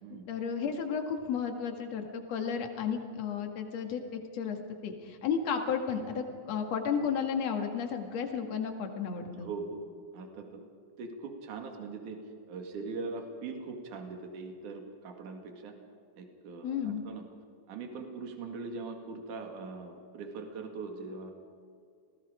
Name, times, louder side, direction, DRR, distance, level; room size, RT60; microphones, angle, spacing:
voice 1, 0.1-4.6 4.8-9.5 16.6-17.0, left 6 dB, 50° left, 4 dB, 2.8 m, -33 dB
voice 2, 9.4-9.9 10.1-10.6 11.0-12.2 12.5-15.7 16.2-17.2 17.7-21.3, right 4 dB, 60° right, 3 dB, 3.5 m, -41 dB
29.5 x 19.0 x 5.1 m, 2.4 s
omnidirectional pair, 4.2 m